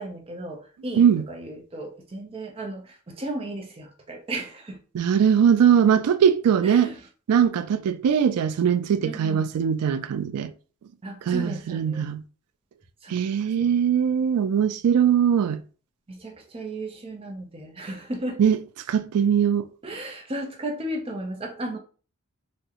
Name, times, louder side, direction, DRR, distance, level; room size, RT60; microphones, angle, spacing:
voice 1, 0.0-4.8 6.6-7.0 9.0-9.5 11.0-12.1 13.0-13.2 13.6-13.7 14.7-14.8 16.1-18.4 19.8-21.8, right 1 dB, 25° right, 0.5 m, -35 dB
voice 2, 4.9-6.9 7.3-10.5 11.3-12.2 13.1-15.6 18.4-18.6 18.9-19.7, right 8 dB, 90° right, 0.3 m, -21 dB
3.5 x 2.0 x 2.8 m
head